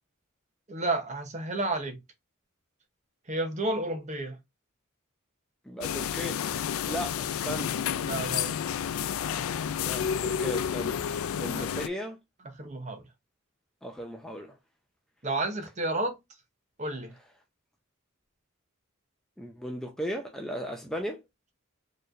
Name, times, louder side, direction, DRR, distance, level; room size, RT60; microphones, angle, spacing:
voice 1, 0.7-2.0 3.3-4.4 8.0-8.5 11.5-11.7 12.6-13.0 15.2-16.2 16.8-17.1, right 2 dB, 35° right, 0.9 m, -31 dB
voice 2, 5.7-6.4 6.9-7.8 9.8-11.0 11.3-12.2 13.8-14.6 19.4-21.2, equal, ahead, 0.5 m, -36 dB
sound 1, 5.8-11.9, left 8 dB, 75° left, 0.3 m, -30 dB
4.4 x 3.1 x 2.5 m
head